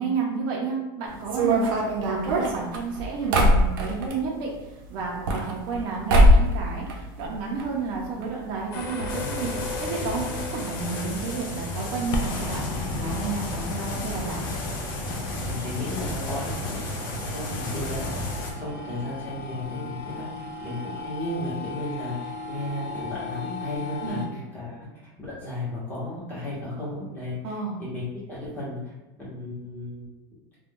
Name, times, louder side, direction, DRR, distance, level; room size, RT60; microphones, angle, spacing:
voice 1, 0.0-1.7 2.1-4.5 4.9-12.6 12.9-14.4 24.0-24.2 27.4-27.8, right 4 dB, 35° right, -2 dB, 0.5 m, -31 dB
sound 1, 1.3-4.2 5.0-5.8 6.1-6.6 6.9-7.7 7.9-8.0 8.2-8.3 9.0-9.1 9.4-9.6, equal, 80° right, 0.7 m, -20 dB
sound 2, 8.7-24.3, left 3 dB, 55° left, 0.4 m, -36 dB
sound 3, 9.1-18.5, left 1 dB, 90° left, 0.9 m, -33 dB
voice 2, 15.4-24.9 25.2-28.9 29.2-30.1, left 1 dB, 15° left, -8 dB, 1.0 m, -34 dB
2.4 x 2.2 x 3.5 m, 1.0 s
supercardioid pair, 175°, 11 cm